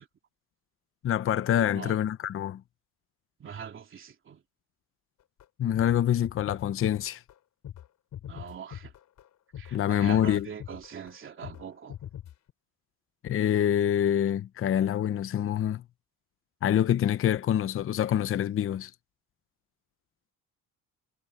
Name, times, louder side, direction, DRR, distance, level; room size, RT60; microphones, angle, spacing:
voice 1, 1.0-2.6 5.6-7.2 9.7-10.5 13.2-15.8 16.6-18.9, left 10 dB, 40° left, 0.8 m, -26 dB
voice 2, 1.6-2.0 3.4-4.4 8.3-8.9 9.6-11.9, right 7 dB, 35° right, 3.2 m, -42 dB
sound 1, 5.4-5.5 5.7-6.0 6.2-7.3 7.6-7.9 8.1-9.3 9.5-9.7 10.0-11.2 11.4-11.6 11.9-12.5, left 11 dB, 55° left, 6.3 m, -42 dB
cardioid pair, 130°, 33 cm